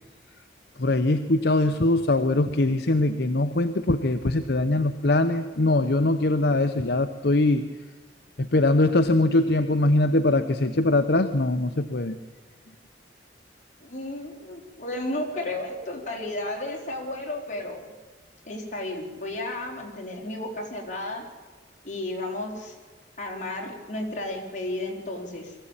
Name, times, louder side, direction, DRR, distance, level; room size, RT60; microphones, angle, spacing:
voice 1, 0.8-7.7 8.4-12.2, left 2 dB, 65° left, 8 dB, 0.9 m, -22 dB
voice 2, 13.8-17.8 18.5-21.2 21.8-22.8 23.2-25.5, left 1 dB, 40° left, 0 dB, 4.2 m, -33 dB
23.0 x 15.0 x 8.9 m, 1.4 s
head